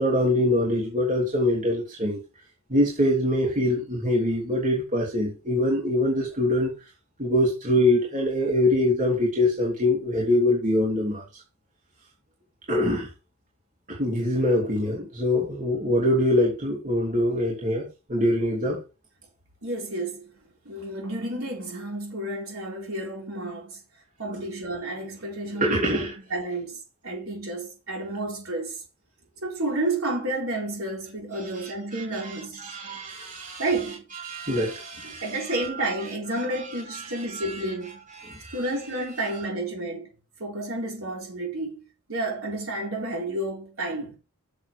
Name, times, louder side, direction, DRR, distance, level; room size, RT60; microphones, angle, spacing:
voice 1, 0.0-2.2 2.7-6.7 7.2-11.2 12.7-13.1 13.9-18.8 25.6-26.1 31.9-33.6 34.2-35.4 36.7-37.7 38.2-38.6, left 1 dB, 35° right, 3.1 m, -24 dB
voice 2, 19.6-20.4 20.7-23.8 24.2-26.8 27.0-28.8 29.4-32.8 33.6-34.0 35.0-38.0 38.5-40.1 40.4-41.8 42.1-44.2, right 2 dB, 65° right, 4.2 m, -31 dB
7.4 x 7.1 x 4.7 m
head